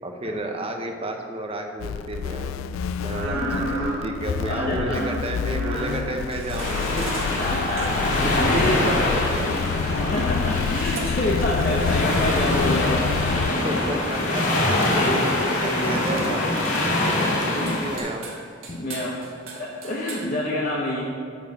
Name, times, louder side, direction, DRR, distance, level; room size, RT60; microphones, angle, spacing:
voice 1, 0.0-2.6 3.0-7.2 7.9-9.5 11.6-11.9 13.6-14.4 15.1-16.4 17.0-18.3, right 1 dB, 30° right, 4 dB, 0.9 m, -32 dB
sound 1, 1.8-13.5, left 6 dB, 90° left, 0.3 m, -29 dB
sound 2, 3.1-9.0 10.7-14.1 14.5-16.3 16.6-20.3, right 2 dB, 80° right, 1.6 m, -34 dB
voice 2, 3.3-3.6 4.5-5.1 7.4-9.0 9.5-9.8 10.1-13.0 13.4-14.0 14.3-16.0 17.5-17.9 18.7-19.2 19.6-21.0, left 1 dB, 45° left, -4 dB, 1.0 m, -28 dB
sound 3, 6.6-18.0, left 1 dB, 70° left, 2.1 m, -24 dB
11.0 x 4.5 x 6.7 m, 2.3 s
head